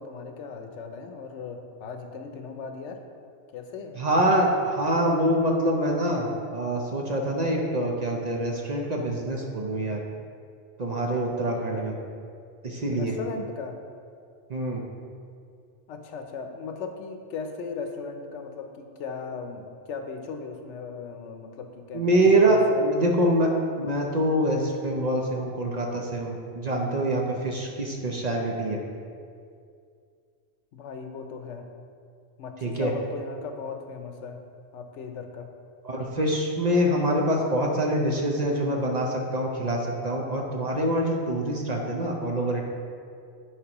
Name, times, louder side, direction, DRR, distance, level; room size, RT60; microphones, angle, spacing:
voice 1, 0.0-3.0 3.5-4.0 11.7-11.9 12.9-13.8 15.9-23.2 30.7-31.7 32.4-34.4 34.7-35.5, left 5 dB, 80° left, 5 dB, 1.0 m, -37 dB
voice 2, 4.0-10.0 10.8-11.9 12.6-13.1 14.5-14.8 21.9-23.5 23.8-28.8 32.6-32.9 35.8-42.6, right 1 dB, 45° right, 0 dB, 0.6 m, -25 dB
10.0 x 4.7 x 2.9 m, 2.3 s
omnidirectional pair, 1.2 m